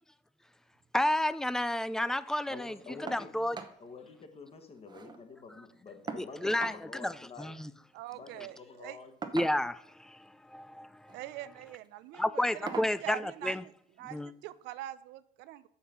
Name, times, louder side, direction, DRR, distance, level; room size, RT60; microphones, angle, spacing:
voice 1, 0.9-2.7 3.0-3.6 6.2-6.7 7.0-7.1 7.4-7.5 9.3-10.2 10.5-10.9 12.2-13.6 14.1-14.3, left 1 dB, 5° left, 0.3 m, -30 dB
voice 2, 2.5-3.3 3.8-7.6 8.1-9.1, left 4 dB, 35° left, 1.3 m, -48 dB
sound 1, 3.1-3.3 3.5-3.8 4.1-4.2 4.5-5.2 6.1-6.8 8.1-8.3 9.2-9.9 10.9-11.2 11.7-11.9 12.7-13.0 14.2-14.3 14.8-14.9, right 4 dB, 25° right, 0.9 m, -41 dB
voice 3, 7.9-9.0 11.1-13.7 14.0-15.7, right 14 dB, 85° right, 0.5 m, -44 dB
6.6 x 5.6 x 5.6 m
cardioid pair, 110°, 17 cm